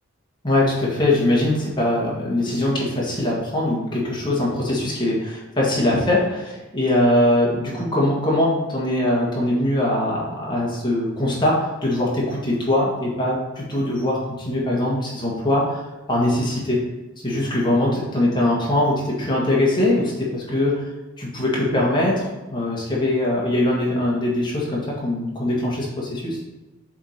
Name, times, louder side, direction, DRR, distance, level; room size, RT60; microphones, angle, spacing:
voice 1, 0.4-15.8 16.1-16.8 17.2-20.8 21.2-26.4, left 1 dB, 20° left, -5 dB, 1.5 m, -22 dB
7.0 x 3.6 x 4.3 m, 1.1 s
head